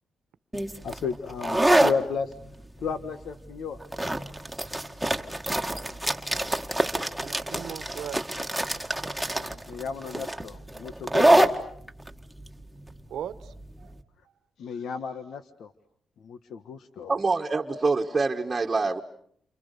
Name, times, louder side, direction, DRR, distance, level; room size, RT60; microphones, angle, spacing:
sound 1, 0.5-13.9, right 1 dB, 5° right, 1.8 m, -26 dB
voice 1, 0.8-2.3 2.8-3.8 9.4-11.5 14.6-15.7 16.2-17.1, left 5 dB, 80° left, 10 dB, 1.4 m, -34 dB
voice 2, 7.2-8.4 13.1-14.0, right 9 dB, 85° right, 13 dB, 1.3 m, -40 dB
voice 3, 17.1-19.0, right 3 dB, 30° right, 2 dB, 1.4 m, -25 dB
29.5 x 28.0 x 6.8 m, 0.65 s
cardioid pair, 95°, 0 cm